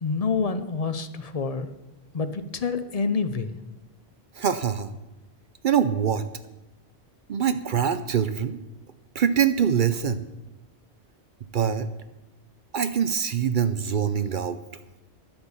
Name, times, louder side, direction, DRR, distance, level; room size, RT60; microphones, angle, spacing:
voice 1, 0.0-1.7 2.1-3.6, left 4 dB, 40° left, 12 dB, 0.6 m, -27 dB
voice 2, 4.3-4.9 5.6-6.2 7.3-8.6 9.1-10.3 11.5-11.9 12.7-14.6, right 8 dB, 55° right, 12 dB, 0.7 m, -24 dB
10.5 x 8.4 x 7.0 m, 1.0 s
omnidirectional pair, 1.1 m